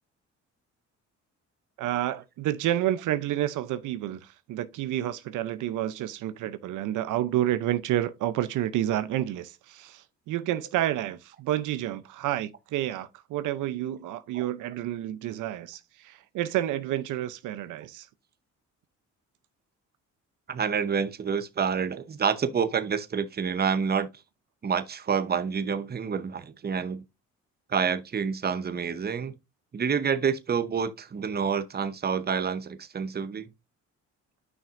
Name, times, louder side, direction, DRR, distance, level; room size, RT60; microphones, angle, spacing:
voice 1, 1.8-18.1, right 13 dB, 85° right, 0.7 m, -29 dB
voice 2, 20.5-24.1 24.6-27.0 27.7-29.3 29.7-33.5, right 6 dB, 30° right, 0.8 m, -28 dB
9.6 x 5.9 x 2.5 m
cardioid pair, 90°, 30 cm